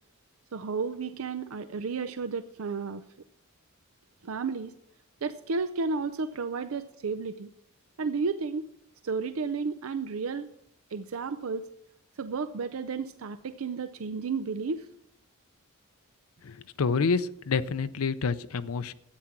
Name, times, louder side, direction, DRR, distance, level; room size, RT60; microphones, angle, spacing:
voice 1, 0.5-3.0 4.2-4.7 5.2-7.5 8.0-8.7 9.0-10.5 10.9-11.7 12.2-14.8, right 4 dB, 70° right, 11 dB, 0.5 m, -32 dB
voice 2, 16.4-18.9, left 4 dB, 80° left, 12 dB, 0.6 m, -28 dB
13.0 x 8.7 x 6.0 m, 0.78 s
head